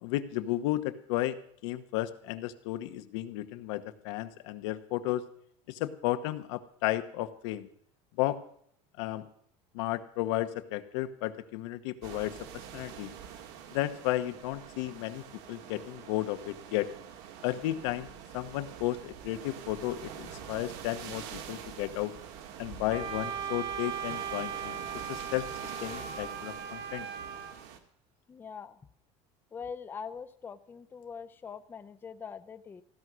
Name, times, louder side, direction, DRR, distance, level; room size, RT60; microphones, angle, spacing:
voice 1, 0.0-1.4 1.6-5.2 5.7-7.7 8.2-8.4 9.0-9.3 9.7-12.3 12.7-13.1 13.7-16.9 17.4-22.1 22.6-24.8 25.1-25.5 25.8-27.1, left 15 dB, 85° left, 10 dB, 1.1 m, -33 dB
sound 1, 12.0-27.8, right 8 dB, 75° right, 1.9 m, -45 dB
Wind instrument woodwind instrument, 22.9-27.5, right 7 dB, 40° right, 1.4 m, -38 dB
voice 2, 28.3-28.8 29.5-32.8, left 6 dB, 15° left, 10 dB, 0.5 m, -43 dB
16.0 x 10.5 x 6.2 m, 0.66 s
cardioid pair, 165°, 15 cm